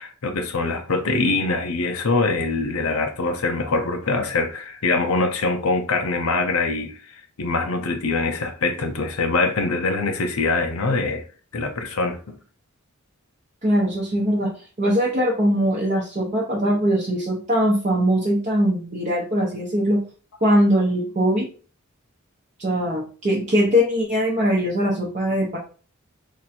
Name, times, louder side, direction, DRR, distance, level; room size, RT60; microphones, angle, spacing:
voice 1, 0.0-11.2 11.5-12.4, left 3 dB, 80° left, 0.6 m, -23 dB
voice 2, 13.6-14.5 14.8-20.0 20.4-21.5 22.6-25.6, equal, 35° right, 0.7 m, -21 dB
3.0 x 2.6 x 4.1 m
head